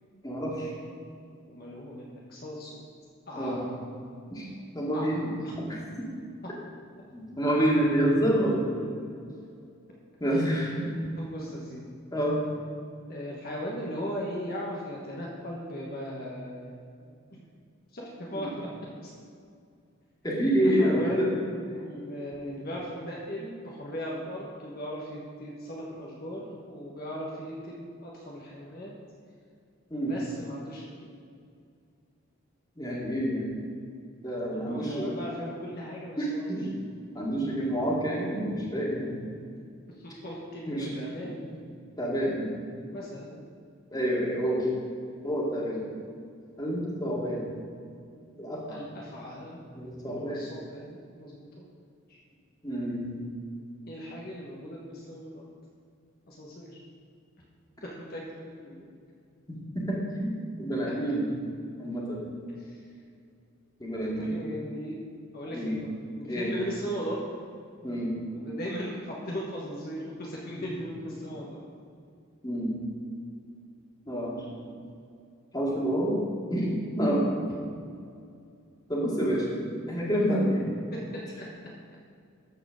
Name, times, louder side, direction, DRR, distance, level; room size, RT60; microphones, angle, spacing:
voice 1, 0.2-0.7 3.4-3.6 4.3-4.4 4.7-5.3 5.6-5.8 7.1-8.7 10.2-10.9 12.1-12.4 18.4-18.5 20.2-21.3 22.4-22.6 29.9-30.1 32.8-33.5 34.2-35.1 36.2-36.8 37.1-39.2 40.7-40.9 42.0-42.5 43.9-44.7 45.2-45.8 46.6-47.5 48.4-48.8 49.8-50.4 52.6-53.2 59.7-61.3 61.8-62.2 63.8-64.4 65.5-65.7 66.2-66.5 67.8-68.1 70.7-70.8 72.4-72.7 74.1-74.4 75.5-76.2 76.5-77.3 78.9-79.6 79.9-80.7, equal, 20° left, -4 dB, 2.2 m, -28 dB
voice 2, 1.5-2.8 3.3-3.8 4.9-5.5 10.3-10.4 11.2-11.8 13.1-17.4 17.9-18.7 19.0-19.1 20.6-21.3 21.7-28.9 30.1-31.1 34.5-36.6 40.0-41.4 42.7-43.4 48.7-49.6 50.1-51.5 52.1-52.2 53.9-55.5 56.3-56.8 58.0-58.8 62.6-62.8 64.0-65.0 65.3-67.2 67.8-68.1 68.3-71.6, equal, 50° left, -4 dB, 1.4 m, -38 dB
13.5 x 4.9 x 6.4 m, 2.3 s
head